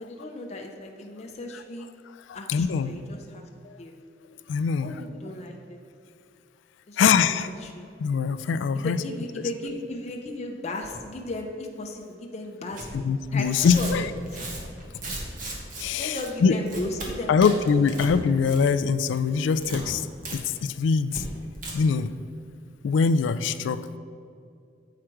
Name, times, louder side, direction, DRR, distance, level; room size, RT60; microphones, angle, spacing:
voice 1, 0.0-1.9 2.3-3.4 3.8-3.9 4.8-5.8 6.9-7.4 7.6-7.9 8.8-13.0 13.3-14.1 15.9-17.6, left 2 dB, 35° left, 1 dB, 0.6 m, -35 dB
voice 2, 2.3-2.9 3.6-3.7 4.5-5.0 7.0-7.5 8.0-9.0 12.9-14.1 15.8-16.5 17.3-20.1 20.3-21.2 21.7-22.1 22.8-24.0, left 5 dB, 85° left, 14 dB, 0.3 m, -23 dB
Tearing, 12.7-12.9 13.4-15.8 16.1-16.3 16.6-17.1 17.4-18.1 18.4-18.8 19.1-19.8 20.2-20.4 20.6-20.7 21.1-21.2 21.5-21.7, right 2 dB, 45° right, 1.2 m, -36 dB
7.5 x 4.9 x 4.5 m, 2.4 s
head